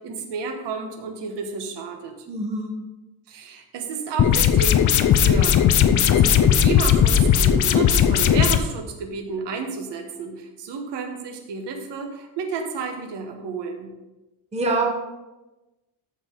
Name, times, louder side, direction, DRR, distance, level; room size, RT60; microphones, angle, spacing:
voice 1, 0.0-2.1 3.3-13.9, right 5 dB, 60° right, 3 dB, 1.3 m, -31 dB
voice 2, 2.3-2.7 14.5-14.9, right 2 dB, 15° right, 0 dB, 0.9 m, -24 dB
sound 1, 4.2-8.6, left 9 dB, 40° left, 0.4 m, -17 dB
13.5 x 4.6 x 3.7 m, 1.0 s
cardioid pair, 180°, 47 cm